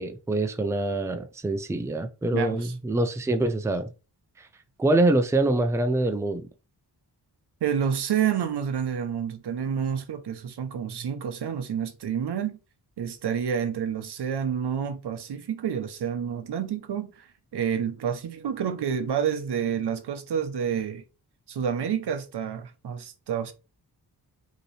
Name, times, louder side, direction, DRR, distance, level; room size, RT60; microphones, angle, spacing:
voice 1, 0.0-3.9 4.4-4.5 4.8-6.5, right 2 dB, 10° right, 0.4 m, -25 dB
voice 2, 2.3-2.7 7.6-12.6 13.0-17.1 17.5-21.0 21.5-23.5, right 8 dB, 85° right, 0.7 m, -29 dB
5.2 x 2.9 x 3.2 m
wide cardioid pair, 135°, 39 cm